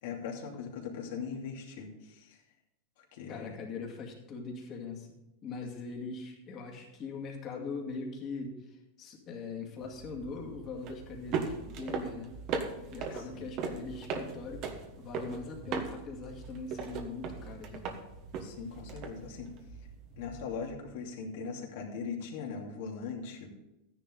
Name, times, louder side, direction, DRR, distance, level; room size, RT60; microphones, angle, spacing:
voice 1, 0.0-2.4 3.0-3.6 13.1-13.5 18.4-19.5 20.2-23.5, left 5 dB, 65° left, 0 dB, 2.7 m, -40 dB
voice 2, 3.3-5.1 5.4-12.3 12.9-14.7 15.0-17.9, left 4 dB, 30° left, 1 dB, 2.1 m, -41 dB
sound 1, 9.8-20.7, right 5 dB, 35° right, 1.2 m, -39 dB
13.5 x 10.0 x 3.8 m, 0.96 s
supercardioid pair, 160°, 0 cm